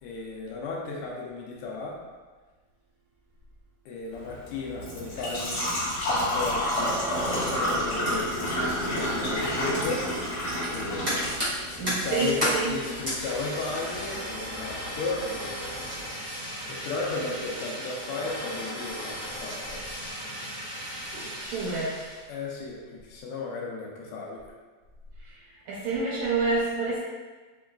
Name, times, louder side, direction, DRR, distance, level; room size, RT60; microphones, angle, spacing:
voice 1, 0.0-2.0 3.8-10.3 10.7-16.1 16.7-19.8 22.3-24.4 25.7-25.9, left 3 dB, 80° left, -2 dB, 1.8 m, -35 dB
Engine / Trickle dribble / Fill (with liquid), 4.1-16.1, equal, 45° left, 1.5 m, -31 dB
Fire, 10.7-22.2, equal, 30° right, 0.6 m, -34 dB
voice 2, 11.8-12.8 21.5-22.0 25.3-25.4 25.7-27.0, right 3 dB, 80° right, -5 dB, 1.5 m, -28 dB
6.0 x 2.3 x 2.3 m, 1.3 s
omnidirectional pair, 3.3 m